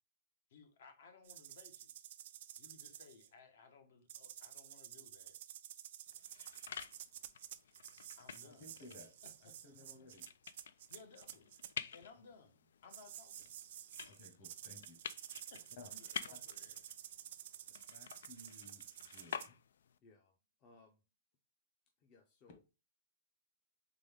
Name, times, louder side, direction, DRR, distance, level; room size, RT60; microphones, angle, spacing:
voice 1, 0.5-1.9 2.6-5.4 8.2-8.7 9.2-9.8 10.9-13.6 15.4-16.8, left 4 dB, 65° left, 1.0 m, -61 dB
sound 1, 1.2-3.3 4.1-11.7 12.9-19.5, right 11 dB, 50° right, 0.3 m, -52 dB
sound 2, 6.1-20.0, left 8 dB, 85° left, 0.3 m, -51 dB
voice 2, 8.4-9.1 9.4-10.3 14.1-15.0 15.8-15.9 16.3-16.4 17.9-19.5, left 2 dB, 40° left, 1.3 m, -57 dB
voice 3, 20.0-21.0 22.0-22.6, left 3 dB, 25° left, 0.6 m, -65 dB
3.9 x 3.5 x 3.4 m
supercardioid pair, 175°, 0 cm